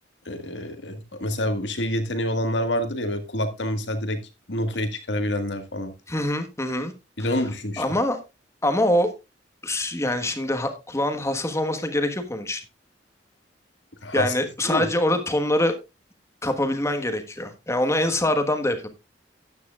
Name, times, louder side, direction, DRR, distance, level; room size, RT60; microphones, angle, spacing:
voice 1, 0.2-4.2 4.5-5.9 7.2-7.8 14.0-14.3 14.6-14.9, left 1 dB, 70° left, 8 dB, 1.7 m, -27 dB
voice 2, 6.1-6.9 7.2-7.4 7.8-8.2 8.6-9.1 9.6-12.6 14.1-15.8 16.4-18.9, left 1 dB, 15° left, 7 dB, 1.3 m, -24 dB
13.0 x 9.7 x 2.4 m, 0.26 s
head